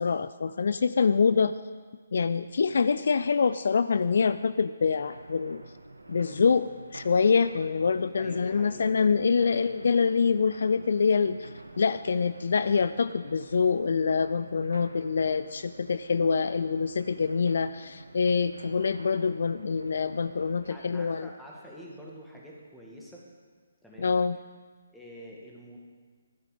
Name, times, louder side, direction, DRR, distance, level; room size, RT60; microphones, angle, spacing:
voice 1, 0.0-1.6 2.1-5.6 6.1-6.7 6.9-11.5 11.8-21.3 24.0-24.4, left 5 dB, 60° left, 13 dB, 0.4 m, -25 dB
sound 1, 4.9-20.7, right 2 dB, 85° right, 1.2 m, -49 dB
voice 2, 8.2-8.9 9.3-9.8 17.1-17.4 20.7-23.2 23.8-24.1 24.9-25.8, equal, ahead, -4 dB, 2.1 m, -47 dB
13.5 x 9.7 x 5.2 m, 1.5 s
figure-of-eight pair, 140°, 0 cm